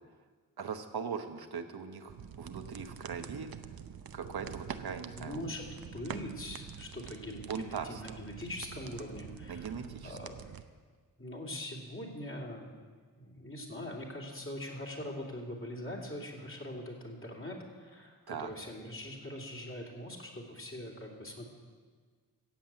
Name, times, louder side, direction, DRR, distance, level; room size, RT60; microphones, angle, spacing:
voice 1, 0.6-3.5 4.1-5.4 7.5-8.2 9.5-10.2 18.3-18.5, right 6 dB, 85° right, 6 dB, 1.1 m, -40 dB
sound 1, 2.1-10.6, right 8 dB, 70° right, 0.7 m, -46 dB
voice 2, 5.1-10.6 11.2-12.7 13.1-21.5, left 1 dB, 35° left, -1 dB, 2.8 m, -42 dB
15.0 x 7.6 x 8.8 m, 1.5 s
wide cardioid pair, 105°, 37 cm